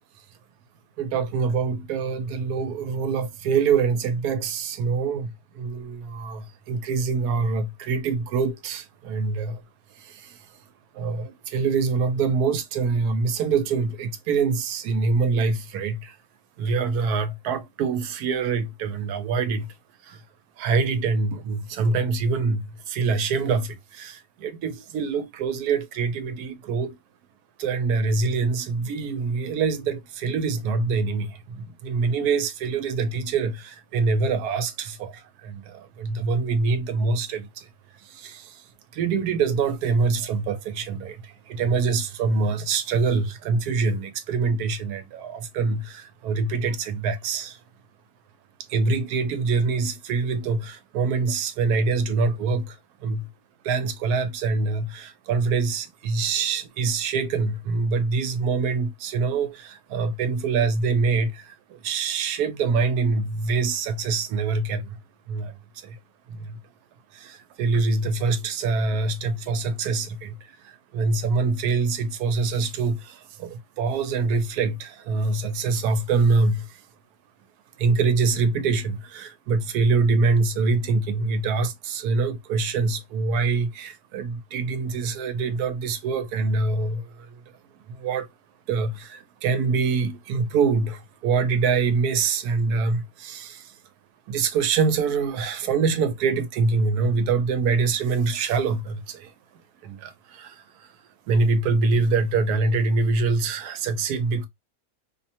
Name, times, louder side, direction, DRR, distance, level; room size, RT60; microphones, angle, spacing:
voice 1, 1.0-9.6 10.0-10.4 10.9-16.1 16.6-19.7 20.0-20.2 20.6-26.9 27.6-37.7 38.0-38.6 38.9-47.6 48.7-52.8 53.0-53.3 53.6-65.0 65.3-65.6 65.8-66.0 66.3-66.6 67.1-70.4 70.9-76.7 77.8-87.4 87.9-88.3 88.7-93.7 94.3-99.3 99.8-100.9 101.3-104.5, right 4 dB, 85° right, 1.1 m, -25 dB
2.6 x 2.1 x 2.7 m
omnidirectional pair, 1.6 m